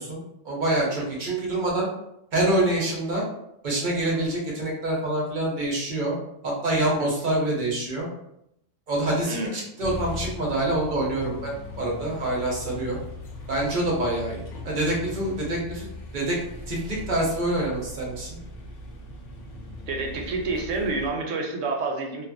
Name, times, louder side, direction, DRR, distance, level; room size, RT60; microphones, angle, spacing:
voice 1, 0.0-1.9 2.3-3.2 3.6-6.2 6.4-8.1 8.9-13.0 13.5-15.9 16.1-16.4 16.7-18.4, right 1 dB, 50° right, -3 dB, 0.6 m, -26 dB
voice 2, 9.3-9.6 19.9-22.3, right 3 dB, 75° right, 1 dB, 0.9 m, -28 dB
sound 1, 9.8-21.1, left 3 dB, 70° left, 0.9 m, -39 dB
2.7 x 2.3 x 2.5 m, 0.81 s
omnidirectional pair, 1.4 m